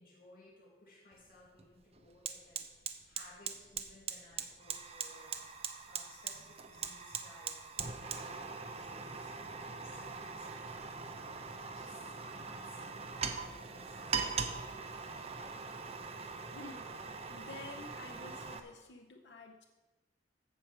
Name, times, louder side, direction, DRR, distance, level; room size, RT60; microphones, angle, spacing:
voice 1, 0.0-5.4 5.8-11.2 11.7-15.3, left 1 dB, 55° left, -3 dB, 2.3 m, -60 dB
Fire, 1.1-1.2 1.6-18.6, right 5 dB, 35° right, 0.7 m, -41 dB
voice 2, 16.5-17.0 17.3-19.6, left 3 dB, 75° left, 2 dB, 0.8 m, -50 dB
15.0 x 5.1 x 6.0 m, 1.2 s
head